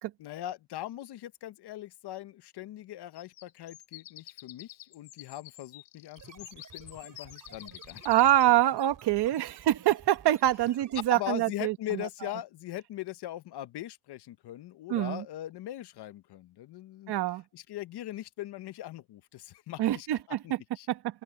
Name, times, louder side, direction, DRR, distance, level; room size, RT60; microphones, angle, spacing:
voice 1, 0.2-8.1 11.1-17.1 17.5-20.9, left 14 dB, 60° left, 1.0 m, -40 dB
sound 1, 3.1-8.5, left 16 dB, 80° left, 4.3 m, -49 dB
sound 2, 6.2-11.3, right 7 dB, 45° right, 3.3 m, -53 dB
voice 2, 8.0-12.1 14.9-15.2 17.1-17.4 19.8-20.6 20.9-21.2, right 13 dB, 60° right, 1.1 m, -25 dB
cardioid pair, 105°, 44 cm